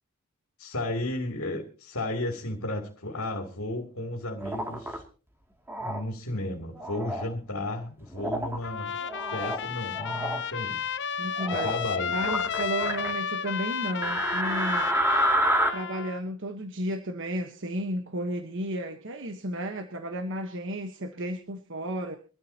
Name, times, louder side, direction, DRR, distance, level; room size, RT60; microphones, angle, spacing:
voice 1, 0.6-5.0 5.8-9.0 9.3-10.9 11.5-12.1, left 1 dB, 75° left, 3 dB, 3.0 m, -33 dB
sound 1, 4.4-5.0 5.7-6.0 6.7-7.3 8.2-8.6 9.0-9.6 10.0-10.4 11.4-11.8 12.2-13.1 14.0-15.7, right 1 dB, 10° right, 2.6 m, -28 dB
Trumpet, 8.6-16.2, left 7 dB, 55° left, 0.8 m, -33 dB
voice 2, 11.2-11.7 12.1-15.0 15.7-22.2, right 1 dB, 55° right, 6 dB, 1.3 m, -33 dB
24.0 x 13.5 x 2.9 m, 0.37 s
head